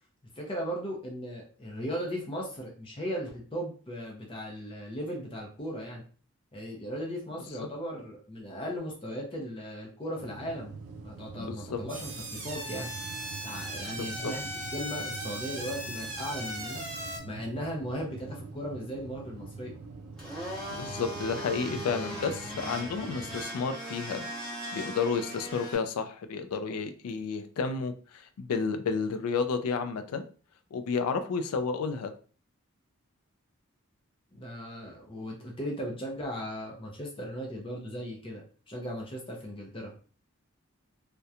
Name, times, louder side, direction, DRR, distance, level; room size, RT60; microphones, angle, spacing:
voice 1, 0.4-6.0 6.5-10.8 11.0-12.9 13.4-19.7 34.3-39.9, equal, 25° left, -1 dB, 0.5 m, -37 dB
sound 1, 10.2-23.4, right 4 dB, 90° right, 0.4 m, -45 dB
voice 2, 11.5-11.8 14.0-14.3 20.7-24.3 24.7-30.3 30.7-32.1, left 5 dB, 85° left, 8 dB, 0.3 m, -31 dB
sound 2, 11.9-17.2, right 1 dB, 60° right, 0.8 m, -38 dB
Domestic sounds home sounds, 20.2-25.7, equal, ahead, 0.9 m, -39 dB
2.8 x 2.1 x 2.3 m, 0.40 s
head